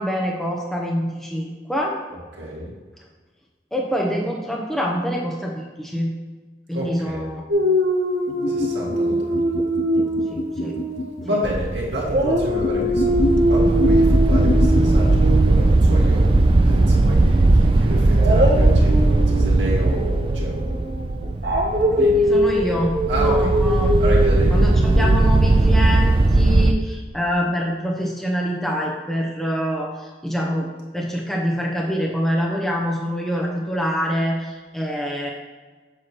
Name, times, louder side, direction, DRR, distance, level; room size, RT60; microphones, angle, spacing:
voice 1, 0.0-2.0 3.7-6.1 6.7-7.4 10.0-10.8 22.0-23.9 24.5-30.7 30.9-35.3, equal, ahead, -1 dB, 0.7 m, -25 dB
voice 2, 2.4-2.7 6.7-7.2 8.5-9.6 11.2-16.3 16.6-22.5 23.1-23.5 24.0-24.5, equal, 80° right, -4 dB, 2.1 m, -30 dB
Dog, 7.5-11.7 12.0-17.0 18.1-25.1, equal, 60° right, 1.2 m, -23 dB
sound 1, 8.3-11.3 12.5-14.8, left 2 dB, 45° left, 0.4 m, -26 dB
sound 2, 11.4-26.7, right 2 dB, 30° right, 0.3 m, -18 dB
7.7 x 3.0 x 6.0 m, 1.3 s
head